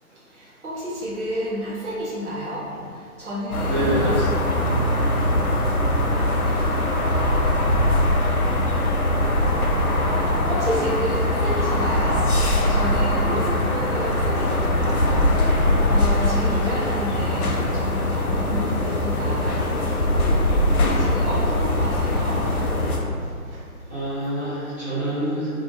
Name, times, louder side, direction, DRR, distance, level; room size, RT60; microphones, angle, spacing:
voice 1, 0.3-2.8 3.2-4.2 10.2-15.3 15.9-19.6 21.0-22.4, equal, 50° right, -10 dB, 1.0 m, -30 dB
sound 1, 3.5-23.0, left 1 dB, 80° left, 0.6 m, -21 dB
voice 2, 3.6-4.3 23.9-25.5, right 1 dB, 10° right, -20 dB, 0.8 m, -26 dB
2.5 x 2.1 x 2.7 m, 2.3 s
figure-of-eight pair, 145°, 44 cm